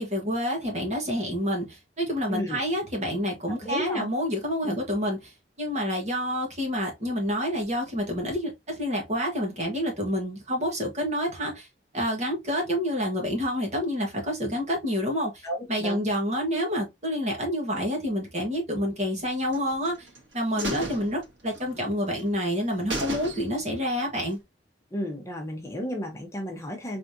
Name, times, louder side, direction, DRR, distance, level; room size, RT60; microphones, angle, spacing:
voice 1, 0.0-5.3 5.6-11.7 11.9-15.4 15.7-20.1 20.3-24.4, equal, 40° right, 1.6 m, -28 dB
voice 2, 2.3-2.6 3.6-4.1 4.6-4.8 15.4-16.0 20.5-20.8 24.9-27.0, equal, 15° left, 0.9 m, -33 dB
sound 1, 19.5-20.2 20.6-21.9 22.2-22.3 22.6-22.7 22.9-23.8 24.2-24.3, right 2 dB, 75° right, 1.6 m, -34 dB
4.2 x 3.5 x 2.7 m
head